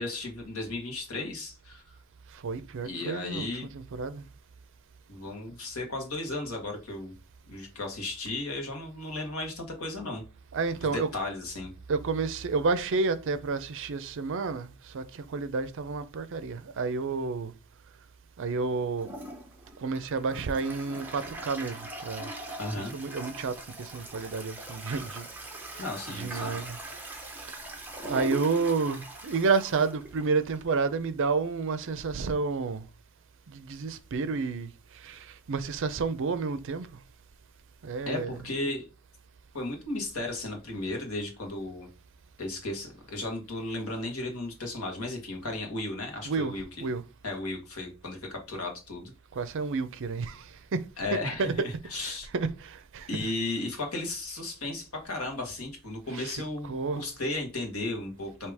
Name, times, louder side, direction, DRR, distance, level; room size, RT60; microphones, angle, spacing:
voice 1, 0.0-1.9 2.8-3.7 5.1-7.1 7.5-10.2 10.8-11.7 22.6-22.9 25.8-26.6 38.1-38.9 39.5-41.9 42.4-46.7 47.2-49.1 51.0-52.3 53.1-58.5, left 2 dB, 70° left, 1.4 m, -35 dB
voice 2, 2.4-3.5 3.7-4.2 10.5-11.1 11.9-14.7 14.9-17.5 18.4-19.1 19.8-22.3 22.9-25.3 25.7-26.8 28.0-32.8 33.5-34.7 35.0-36.9 37.8-38.5 46.2-46.6 46.8-47.0 49.4-50.4 50.7-50.8 51.1-51.7 52.0-53.2 56.1-56.4 56.6-57.0, right 4 dB, 60° right, 0.5 m, -30 dB
Toilet flush, 19.0-30.8, right 1 dB, 10° right, 0.8 m, -41 dB
4.9 x 2.8 x 3.4 m
head